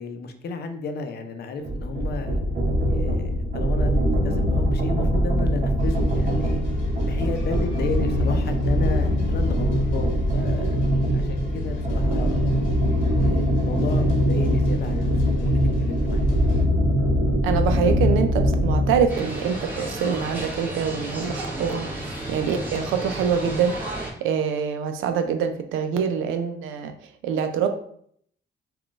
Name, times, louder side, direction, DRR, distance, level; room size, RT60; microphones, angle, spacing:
voice 1, 0.0-2.4 2.9-6.6 7.1-10.8 11.1-12.5 13.1-16.2, left 4 dB, 55° left, 7 dB, 0.5 m, -33 dB
sound 1, 1.6-19.1, equal, 45° right, 0.7 m, -22 dB
sound 2, 5.8-16.6, left 4 dB, 80° left, 0.9 m, -43 dB
voice 2, 17.4-26.9 27.2-27.7, right 7 dB, 85° right, 7 dB, 0.4 m, -25 dB
sound 3, 19.1-24.1, right 1 dB, 10° right, 1.2 m, -32 dB
3.6 x 2.3 x 2.4 m, 0.65 s
cardioid pair, 90°, 20 cm